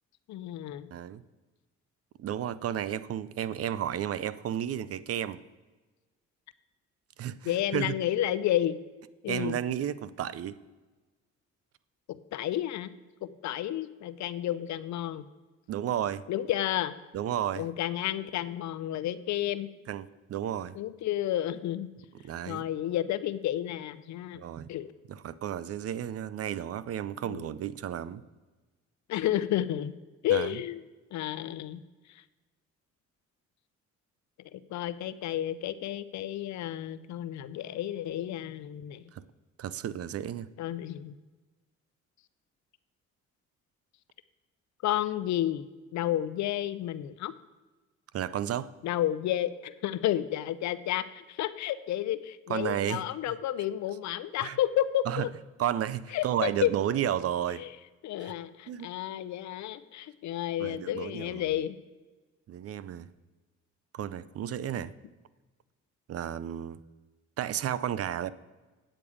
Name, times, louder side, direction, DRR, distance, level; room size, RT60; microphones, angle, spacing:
voice 1, 0.3-0.9 7.5-8.8 9.2-9.6 12.1-12.9 13.2-15.3 16.3-16.9 17.6-19.7 20.8-21.9 22.5-24.4 24.7-24.9 27.3-27.5 29.1-29.9 30.2-30.8 31.1-31.8 34.5-39.0 40.6-41.1 44.8-45.7 45.9-47.3 48.8-55.3 56.1-56.7 57.6-57.7 58.0-61.7, left 12 dB, 70° left, 0.6 m, -31 dB
voice 2, 0.9-1.2 2.2-5.4 7.2-8.0 9.3-10.6 15.7-16.2 17.1-17.6 19.9-20.7 22.2-22.6 24.3-24.7 25.1-28.2 30.3-30.6 39.1-39.2 39.6-40.5 48.1-48.7 52.5-53.0 54.4-54.6 55.1-55.3 55.6-57.7 58.2-58.3 58.7-58.9 60.6-61.5 62.5-63.1 63.9-64.9 66.1-66.8 67.4-68.3, right 10 dB, 55° right, 0.5 m, -32 dB
8.9 x 8.4 x 5.0 m
cardioid pair, 85°, 29 cm